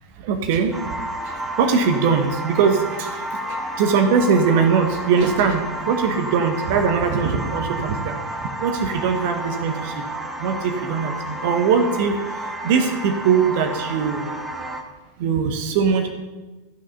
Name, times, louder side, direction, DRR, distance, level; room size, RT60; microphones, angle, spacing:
voice 1, 0.2-0.7 1.2-3.2 3.5-8.1 8.6-10.0 10.4-12.2 12.6-14.3 15.2-16.1, right 6 dB, 50° right, 5 dB, 1.1 m, -21 dB
sound 1, 0.7-14.8, right 1 dB, 10° right, 1.4 m, -31 dB
13.5 x 6.3 x 5.6 m, 1.2 s
figure-of-eight pair, 90°, 0 cm